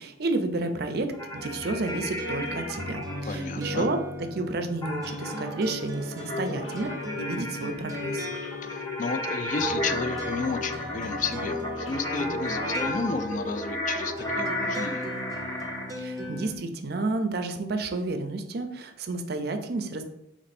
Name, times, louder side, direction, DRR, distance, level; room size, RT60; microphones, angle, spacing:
voice 1, 0.0-4.0 4.3-6.9 7.2-8.3 16.0-20.0, right 2 dB, 55° right, 7 dB, 0.5 m, -31 dB
sound 1, 1.1-3.2 4.8-15.9, equal, 20° left, 0.8 m, -33 dB
sound 2, 1.3-16.6, equal, 20° right, 0.8 m, -38 dB
voice 2, 3.3-3.9 8.6-15.1, left 4 dB, 45° left, 10 dB, 0.3 m, -32 dB
sound 3, 6.2-13.1, left 5 dB, 85° left, 0.6 m, -39 dB
4.3 x 3.0 x 4.2 m, 0.81 s
head